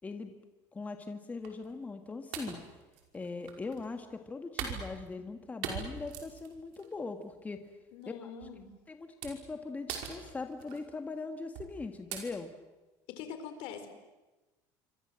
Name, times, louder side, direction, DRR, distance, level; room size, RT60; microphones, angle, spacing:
voice 1, 0.0-0.3 0.7-2.6 3.1-7.7 8.2-8.3 8.9-12.5, left 3 dB, 15° left, 6 dB, 1.8 m, -40 dB
sound 1, 1.4-1.7 2.3-3.9 4.6-5.4 5.6-6.9 7.3-7.6 8.4-8.6 9.2-9.5 9.9-10.8 11.5-11.8 12.1-12.2, right 8 dB, 80° right, 5.4 m, -41 dB
voice 2, 7.9-8.7 13.1-13.9, left 7 dB, 70° left, 9 dB, 4.5 m, -43 dB
27.0 x 25.0 x 7.7 m, 1.1 s
cardioid pair, 130°, 9 cm